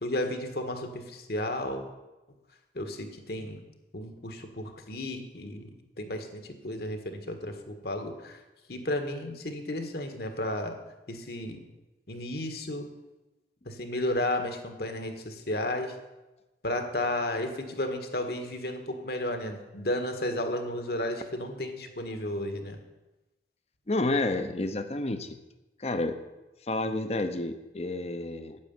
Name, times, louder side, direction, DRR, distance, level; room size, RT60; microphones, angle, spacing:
voice 1, 0.0-1.9 2.8-3.6 3.9-5.7 6.0-8.4 8.7-10.8 11.1-11.6 12.1-12.9 13.7-15.9 16.6-22.8, left 1 dB, 60° left, 6 dB, 1.7 m, -33 dB
voice 2, 23.9-25.4 25.8-26.2 26.7-28.6, left 2 dB, 35° left, 9 dB, 0.9 m, -30 dB
9.7 x 7.9 x 9.4 m, 1.1 s
head